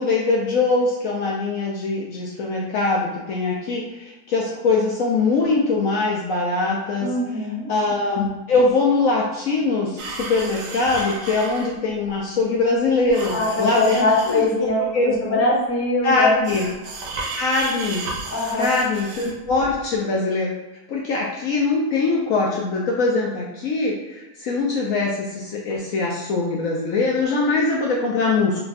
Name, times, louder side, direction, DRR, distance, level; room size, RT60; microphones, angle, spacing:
voice 1, 0.0-7.1 7.7-14.4 14.8-15.4 16.0-16.6 17.4-18.0 18.5-20.5 20.9-28.6, left 3 dB, 70° left, -2 dB, 0.9 m, -22 dB
voice 2, 7.0-7.7 13.3-16.3 18.3-18.7, left 2 dB, 10° left, -5 dB, 0.7 m, -22 dB
sound 1, 10.0-11.7 13.1-14.7 16.4-20.0, right 3 dB, 75° right, 1.2 m, -33 dB
3.3 x 2.3 x 4.0 m, 1.1 s
omnidirectional pair, 1.7 m